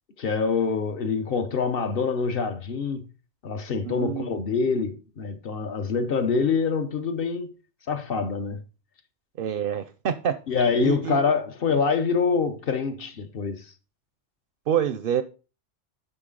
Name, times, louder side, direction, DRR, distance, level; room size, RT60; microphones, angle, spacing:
voice 1, 0.2-3.1 3.4-7.5 7.9-8.6 10.5-13.7, left 5 dB, 60° left, 0.9 m, -25 dB
voice 2, 3.8-4.3 9.4-10.4 10.8-11.2 14.7-15.2, right 9 dB, 60° right, 0.6 m, -26 dB
7.9 x 5.7 x 3.8 m
omnidirectional pair, 1.2 m